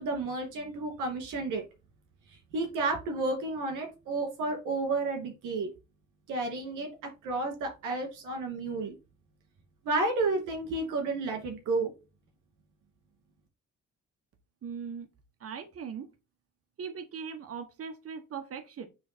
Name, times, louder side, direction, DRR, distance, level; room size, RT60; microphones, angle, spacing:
voice 1, 0.0-1.6 2.5-5.7 6.3-6.9 7.2-9.0 9.8-11.9, right 3 dB, 90° right, 3 dB, 2.6 m, -31 dB
voice 2, 14.6-15.1 15.4-16.1 16.8-18.9, right 6 dB, 50° right, 8 dB, 1.3 m, -39 dB
9.4 x 3.1 x 4.5 m, 0.28 s
cardioid pair, 90°, 30 cm